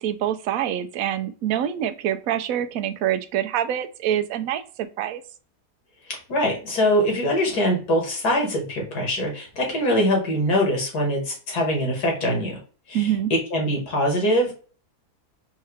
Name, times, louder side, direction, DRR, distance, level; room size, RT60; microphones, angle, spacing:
voice 1, 0.0-5.2 12.9-13.3, right 10 dB, 70° right, 10 dB, 0.9 m, -25 dB
voice 2, 6.1-12.6 12.9-14.5, equal, 75° left, 0 dB, 2.1 m, -23 dB
4.6 x 2.8 x 3.2 m, 0.38 s
omnidirectional pair, 1.7 m